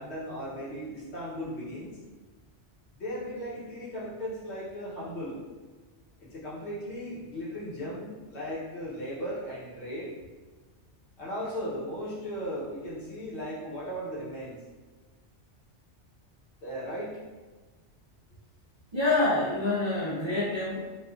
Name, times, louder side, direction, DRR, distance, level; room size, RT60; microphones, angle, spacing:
voice 1, 0.0-2.0 2.9-5.4 6.2-10.1 11.2-14.6 16.6-17.2, equal, 70° left, -7 dB, 1.2 m, -37 dB
voice 2, 18.9-20.8, left 2 dB, 45° right, -8 dB, 0.3 m, -26 dB
3.0 x 2.3 x 2.3 m, 1.3 s
omnidirectional pair, 1.2 m